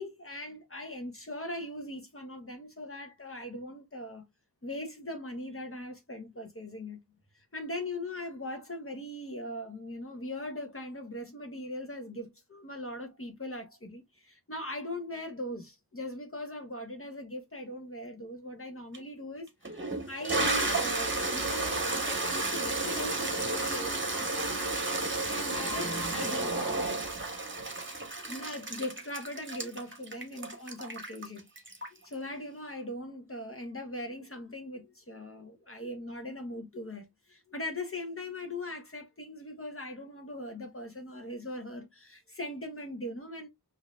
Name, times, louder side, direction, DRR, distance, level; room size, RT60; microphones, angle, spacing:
voice 1, 0.0-4.2 4.6-7.0 7.5-24.7 25.3-27.1 28.3-31.5 32.0-43.5, left 1 dB, 35° left, 1.3 m, -40 dB
Toilet flush, 18.9-19.0 19.7-32.1, right 2 dB, 30° right, 1.2 m, -32 dB
4.8 x 2.9 x 2.3 m
wide cardioid pair, 55°, 40 cm